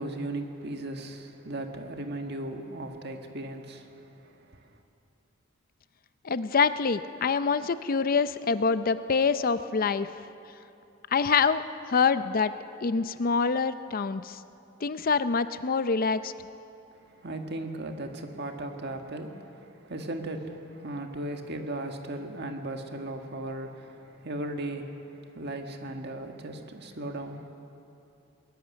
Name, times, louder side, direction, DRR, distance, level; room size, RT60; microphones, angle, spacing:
voice 1, 0.0-4.7 17.0-27.5, right 1 dB, 55° right, 4 dB, 1.6 m, -37 dB
voice 2, 6.2-10.1 11.1-12.5 12.8-14.4 14.8-16.3, left 5 dB, 45° left, 12 dB, 0.5 m, -25 dB
20.0 x 14.0 x 9.8 m, 2.8 s
head